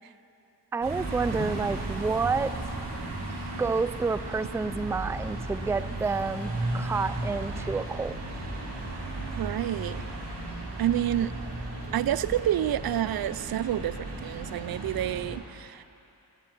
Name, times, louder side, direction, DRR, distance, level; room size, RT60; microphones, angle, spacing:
voice 1, 0.7-2.6 3.6-8.2, right 4 dB, 5° right, 14 dB, 0.4 m, -29 dB
sound 1, 0.8-15.3, right 2 dB, 85° right, 3.1 m, -35 dB
voice 2, 9.4-10.0 10.8-11.3 11.9-15.8, right 12 dB, 65° right, 17 dB, 0.5 m, -28 dB
13.0 x 9.4 x 10.0 m, 2.7 s
cardioid pair, 60°, 39 cm